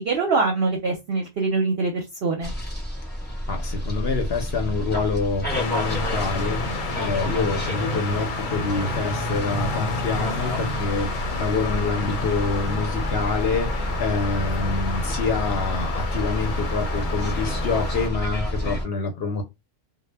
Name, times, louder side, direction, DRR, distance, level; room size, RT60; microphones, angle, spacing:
voice 1, 0.0-2.5, right 3 dB, 60° right, 0.7 m, -24 dB
sound 1, 2.4-18.8, equal, 10° left, 0.5 m, -30 dB
voice 2, 3.5-19.4, left 4 dB, 60° left, 0.7 m, -27 dB
sound 2, 5.5-18.1, left 2 dB, 80° left, 1.0 m, -30 dB
2.1 x 2.1 x 3.2 m
omnidirectional pair, 1.4 m